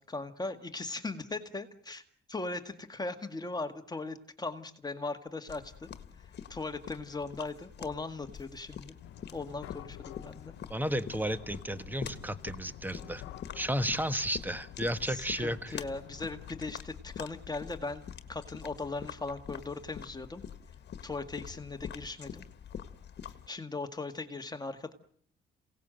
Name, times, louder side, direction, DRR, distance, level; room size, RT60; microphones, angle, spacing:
voice 1, 0.1-2.0 2.3-5.9 6.2-8.9 9.3-10.5 15.1-20.4 21.0-22.4 23.5-24.9, left 3 dB, 20° left, 7 dB, 1.9 m, -39 dB
sound 1, 5.5-23.5, left 8 dB, 60° left, 1.7 m, -46 dB
sound 2, 9.0-16.7, left 12 dB, 90° left, 1.0 m, -50 dB
voice 2, 10.7-13.2 13.5-15.8, equal, 10° right, 12 dB, 1.5 m, -33 dB
27.5 x 18.0 x 7.8 m, 0.62 s
cardioid pair, 90°, 20 cm